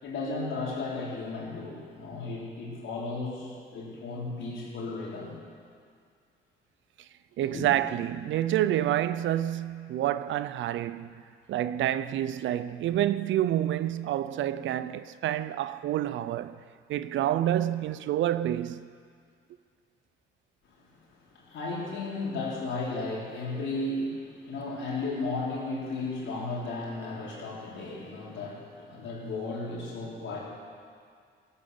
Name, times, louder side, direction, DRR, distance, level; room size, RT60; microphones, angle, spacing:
voice 1, 0.0-5.3 7.5-7.7 21.3-30.4, left 3 dB, 75° left, 4.6 m, -34 dB
voice 2, 7.4-11.2 11.5-16.6 16.9-18.9, right 12 dB, 75° right, 0.6 m, -28 dB
17.0 x 8.9 x 7.0 m
cardioid pair, 90°, 20 cm